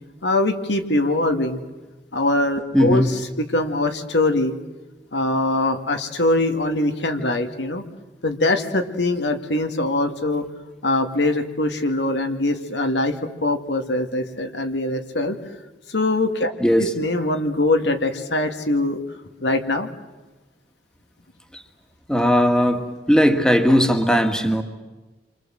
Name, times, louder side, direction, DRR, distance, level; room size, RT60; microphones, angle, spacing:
voice 1, 0.2-1.6 2.1-4.5 5.1-7.8 8.2-10.5 10.8-15.4 15.9-16.5 16.8-19.0 19.4-19.9, left 2 dB, 85° left, 6 dB, 2.3 m, -22 dB
voice 2, 2.7-3.2 16.6-17.0 21.5-21.6 22.1-24.6, equal, 5° left, 6 dB, 1.8 m, -18 dB
29.0 x 25.0 x 7.8 m, 1.2 s
head